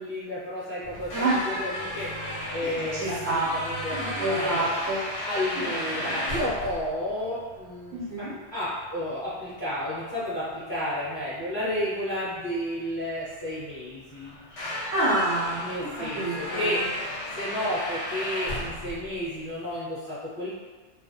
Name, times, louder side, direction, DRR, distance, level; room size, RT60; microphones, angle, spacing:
voice 1, 0.0-2.1 2.5-4.0 4.3-4.7 5.2-8.2 8.5-14.4 15.6-16.8 17.3-20.5, left 1 dB, 25° left, -13 dB, 0.8 m, -32 dB
sound 1, 0.8-19.7, left 1 dB, 65° left, 0.9 m, -35 dB
voice 2, 1.1-1.5 2.6-3.5 3.9-5.0 5.6-6.5 7.9-8.3 14.9-16.8, right 2 dB, 60° right, -7 dB, 0.8 m, -29 dB
2.3 x 2.0 x 2.7 m, 1.4 s
omnidirectional pair, 1.3 m